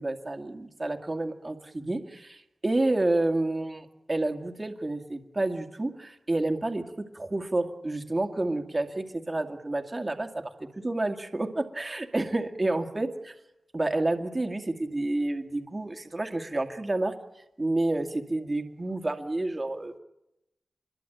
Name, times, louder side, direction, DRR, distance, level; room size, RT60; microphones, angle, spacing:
voice 1, 0.0-13.4 13.7-17.1 17.6-20.0, right 2 dB, 25° right, 5 dB, 2.1 m, -29 dB
25.5 x 22.0 x 9.1 m, 0.90 s
wide cardioid pair, 105°, 0 cm